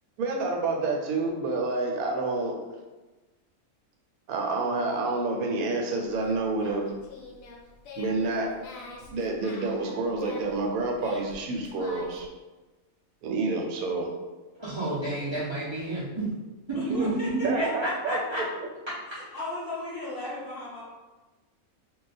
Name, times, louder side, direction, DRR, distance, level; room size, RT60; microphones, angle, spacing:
voice 1, 0.2-2.6 4.3-6.9 7.9-8.5 9.1-12.3 13.2-14.1 16.9-17.1 17.4-18.2, right 3 dB, 80° right, 1 dB, 1.0 m, -28 dB
Singing, 6.0-12.3, left 3 dB, 75° left, 1.0 m, -46 dB
voice 2, 14.5-16.3 16.7-18.4, right 2 dB, 45° right, -11 dB, 0.3 m, -30 dB
voice 3, 16.7-17.7 18.1-18.4 19.1-20.8, left 2 dB, 50° left, -6 dB, 0.8 m, -36 dB
2.3 x 2.2 x 4.0 m, 1.2 s
omnidirectional pair, 1.5 m